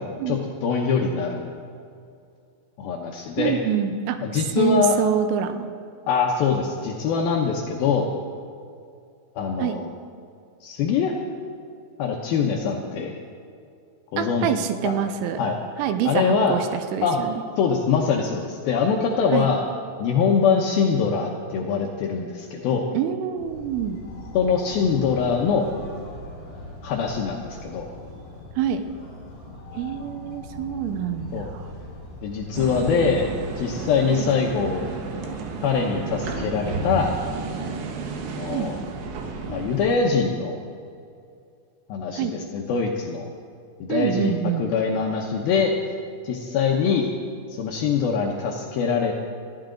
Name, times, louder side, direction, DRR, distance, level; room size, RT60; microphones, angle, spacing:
voice 1, 0.0-1.6 2.8-3.6 4.2-5.0 6.1-8.1 9.4-9.9 10.6-11.1 12.0-13.2 14.1-14.5 14.8-14.9 15.4-15.6 16.1-16.6 17.0-17.2 17.6-19.6 20.0-22.9 24.3-25.7 26.8-27.9 31.3-31.5 32.2-33.3 33.6-34.9 35.6-37.1 38.2-38.8 39.5-40.6 41.9-43.3 43.8-45.9 46.2-47.1 47.5-49.1, left 6 dB, 80° left, 0 dB, 2.1 m, -23 dB
voice 2, 3.4-4.2 4.6-5.7 9.6-9.8 14.2-15.4 15.8-16.7 16.9-17.4 19.3-19.5 22.9-24.0 28.6-28.9 29.7-31.6 34.1-34.3 38.5-38.7 42.2-42.3 43.9-44.6, right 9 dB, 85° right, 8 dB, 3.3 m, -26 dB
sound 1, 23.4-35.7, left 1 dB, 40° left, 6.3 m, -40 dB
sound 2, 32.5-40.0, right 4 dB, 70° right, 3.4 m, -32 dB
21.5 x 15.0 x 3.9 m, 2.4 s
omnidirectional pair, 5.7 m